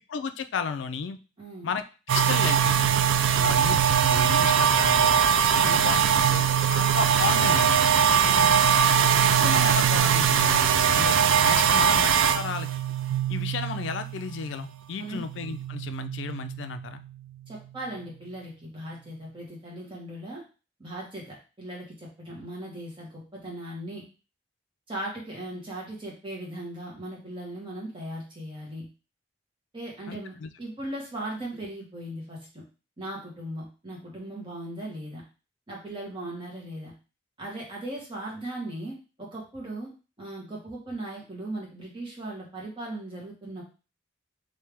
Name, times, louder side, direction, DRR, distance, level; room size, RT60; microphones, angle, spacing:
voice 1, 0.1-1.2 1.6-1.8 2.1-3.0 3.4-3.8 4.1-5.2 5.5-7.9 9.0-10.6 10.9-11.2 11.4-12.7 13.3-17.0 30.1-30.5, left 6 dB, 70° left, 10 dB, 0.3 m, -33 dB
voice 2, 1.4-1.7 3.3-3.6 5.6-5.8 8.2-8.5 14.9-15.2 17.5-20.4 20.8-24.0 24.9-28.8 29.7-32.6 33.0-35.2 35.7-36.9 37.4-38.9 39.2-39.9 40.2-43.6, right 1 dB, 25° right, -3 dB, 1.3 m, -38 dB
sound 1, 2.1-14.8 15.1-17.6, right 8 dB, 90° right, 0.3 m, -22 dB
3.3 x 2.7 x 3.4 m, 0.33 s
head